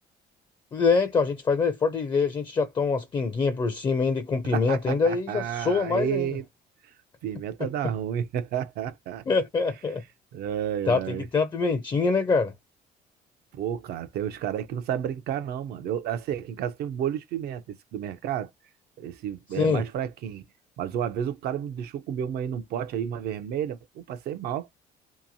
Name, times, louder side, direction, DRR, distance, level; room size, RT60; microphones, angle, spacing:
voice 1, 0.7-6.3 9.3-10.0 10.9-12.5 19.6-19.8, left 4 dB, 25° left, 0.4 m, -24 dB
voice 2, 4.5-6.4 6.8-6.9 7.2-9.2 10.3-11.3 13.5-18.5 19.0-20.5 20.8-24.7, right 9 dB, 70° right, 0.5 m, -31 dB
2.8 x 2.6 x 2.6 m
cardioid pair, 110°, 17 cm